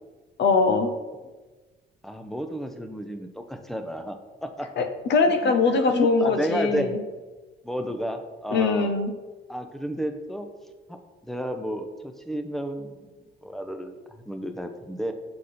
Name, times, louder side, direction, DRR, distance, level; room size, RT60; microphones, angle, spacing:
voice 1, 0.4-0.9 4.8-7.0 8.5-9.1, left 4 dB, 65° left, 7 dB, 0.7 m, -22 dB
voice 2, 2.0-4.7 5.4-7.0 7.6-8.9 9.5-10.5 10.9-11.0 11.2-15.1, equal, ahead, 6 dB, 0.6 m, -32 dB
6.5 x 4.1 x 4.2 m, 1.3 s
cardioid pair, 90°, 20 cm